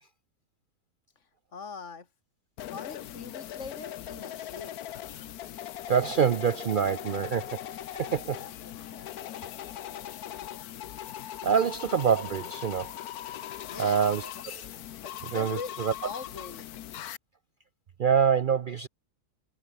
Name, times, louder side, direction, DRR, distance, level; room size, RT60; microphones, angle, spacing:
voice 1, 1.5-2.1 2.6-4.8 8.3-10.4 13.6-14.1 14.4-16.7, left 5 dB, 50° left, 3.0 m, -43 dB
sound 1, 2.6-17.2, left 12 dB, 75° left, 1.3 m, -40 dB
voice 2, 5.9-8.4 11.2-12.9 13.8-14.3 14.5-14.6 15.3-15.9 18.0-18.9, right 7 dB, 85° right, 0.4 m, -26 dB
omnidirectional pair, 1.7 m